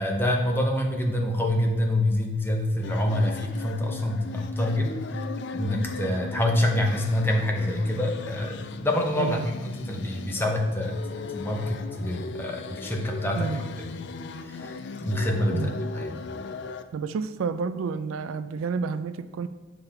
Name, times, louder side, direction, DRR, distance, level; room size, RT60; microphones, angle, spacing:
voice 1, 0.0-5.2 5.5-9.5 9.9-13.5 13.8-13.9 14.4-15.7 15.9-16.2, left 1 dB, 10° left, 0 dB, 0.7 m, -26 dB
sound 1, 2.8-16.8, left 4 dB, 55° left, 0.4 m, -38 dB
voice 2, 13.2-13.6 15.5-15.8 16.9-19.5, right 5 dB, 75° right, 13 dB, 0.3 m, -30 dB
7.0 x 3.4 x 5.7 m, 1.3 s
head